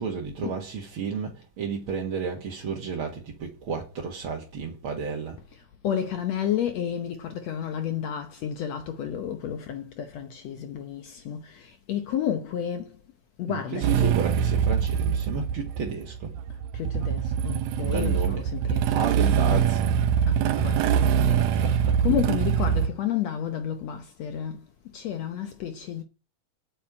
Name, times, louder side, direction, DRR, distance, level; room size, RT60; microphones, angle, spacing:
voice 1, 0.0-5.4 13.5-16.3 17.8-18.5 18.8-19.8 20.5-22.0, right 5 dB, 50° right, 1.9 m, -32 dB
voice 2, 5.5-13.0 13.4-14.2 16.7-24.7 24.9-26.0, left 9 dB, 70° left, 1.6 m, -32 dB
Motorcycle / Engine starting, 13.8-22.9, right 8 dB, 80° right, 2.6 m, -24 dB
8.6 x 7.2 x 8.7 m
omnidirectional pair, 4.0 m